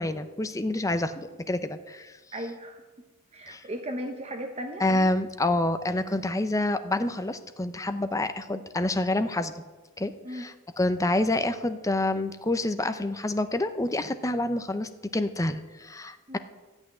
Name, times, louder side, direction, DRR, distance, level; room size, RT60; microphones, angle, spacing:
voice 1, 0.0-2.2 3.5-3.6 4.8-9.6 10.0-16.4, left 2 dB, 15° left, 10 dB, 0.6 m, -28 dB
voice 2, 2.3-2.8 3.3-4.8 10.2-10.4 16.3-16.4, equal, 30° right, 4 dB, 1.0 m, -36 dB
13.5 x 6.3 x 9.7 m, 1.2 s
head